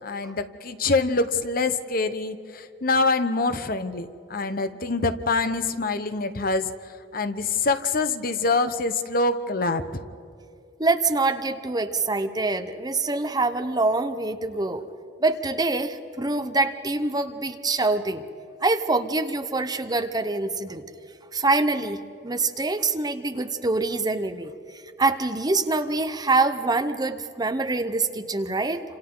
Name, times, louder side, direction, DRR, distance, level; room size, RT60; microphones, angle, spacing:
voice 1, 0.0-6.7 7.1-10.0, left 3 dB, 55° left, 10 dB, 1.0 m, -25 dB
voice 2, 10.8-14.8 15.2-18.2 18.6-20.8 21.3-22.0 22.2-24.5 25.0-28.8, right 3 dB, 20° right, 8 dB, 0.9 m, -25 dB
29.5 x 26.5 x 3.9 m, 2.5 s
head